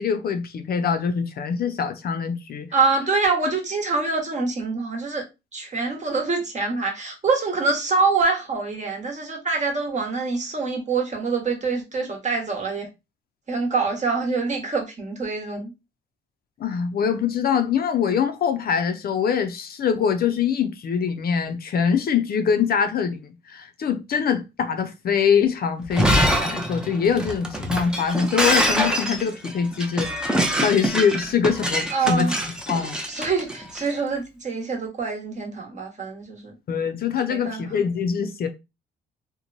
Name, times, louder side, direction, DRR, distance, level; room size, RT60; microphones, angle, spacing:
voice 1, 0.0-2.7 16.6-23.2 23.5-30.1 30.6-32.3 32.7-33.0 36.7-38.5, left 7 dB, 50° left, 0.5 m, -23 dB
voice 2, 2.7-5.2 5.5-12.9 13.5-15.7 31.9-32.3 33.1-36.5 37.3-37.7, right 4 dB, 35° right, 1.1 m, -25 dB
Shatter, 25.8-33.9, equal, 5° right, 0.5 m, -24 dB
2.9 x 2.1 x 2.5 m
cardioid pair, 90°, 20 cm